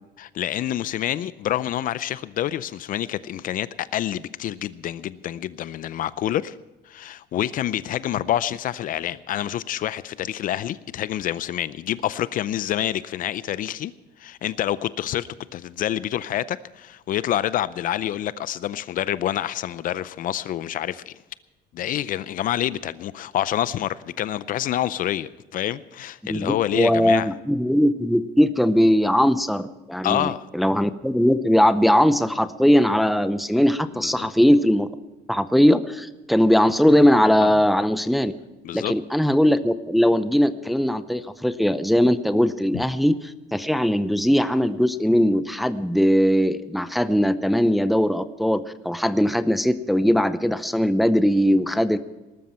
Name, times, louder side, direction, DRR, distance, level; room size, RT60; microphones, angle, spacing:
voice 1, 0.2-6.6 6.9-13.9 14.2-21.1 21.7-27.3 30.0-30.5 34.0-34.3 37.4-37.6 38.6-38.9 42.7-42.8, left 12 dB, 50° left, 17 dB, 0.5 m, -27 dB
voice 2, 26.3-34.9 35.3-38.3 38.7-52.0, equal, ahead, 12 dB, 0.6 m, -20 dB
19.5 x 13.0 x 4.4 m, 1.1 s
cardioid pair, 145°, 18 cm